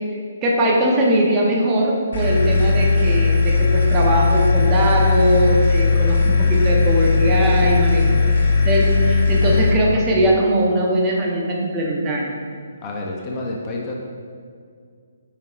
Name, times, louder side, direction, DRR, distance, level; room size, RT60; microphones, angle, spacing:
voice 1, 0.4-8.3 8.6-12.3, right 1 dB, 20° right, -2 dB, 0.8 m, -20 dB
sound 1, 2.1-9.7, left 4 dB, 50° left, 0.9 m, -17 dB
voice 2, 12.8-14.0, left 2 dB, 25° left, -2 dB, 0.7 m, -29 dB
5.8 x 3.9 x 4.3 m, 2.1 s
figure-of-eight pair, 135°, 0 cm